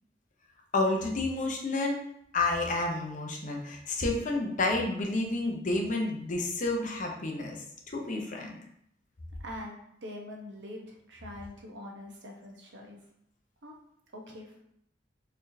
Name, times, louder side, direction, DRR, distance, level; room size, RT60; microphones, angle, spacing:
voice 1, 0.7-2.0 2.3-8.6, left 2 dB, 45° left, 1 dB, 0.7 m, -30 dB
voice 2, 9.4-13.0 13.6-13.8 14.1-14.6, left 1 dB, 80° right, 0 dB, 0.9 m, -44 dB
4.3 x 3.2 x 2.7 m, 0.73 s
head